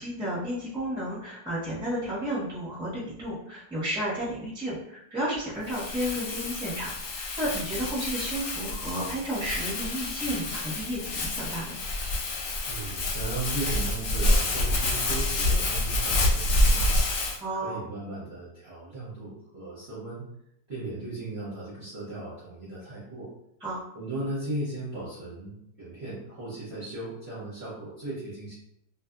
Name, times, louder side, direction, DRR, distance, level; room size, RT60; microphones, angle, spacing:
voice 1, 0.0-11.8 17.4-17.8 23.6-23.8, equal, 5° right, -8 dB, 0.8 m, -32 dB
Crumpling crinkling, 5.7-17.4, left 1 dB, 80° left, 0.7 m, -28 dB
voice 2, 12.7-17.1 17.5-20.2 20.7-23.3 23.9-28.6, right 2 dB, 50° right, -9 dB, 0.8 m, -37 dB
2.7 x 2.6 x 2.4 m, 0.79 s
omnidirectional pair, 2.0 m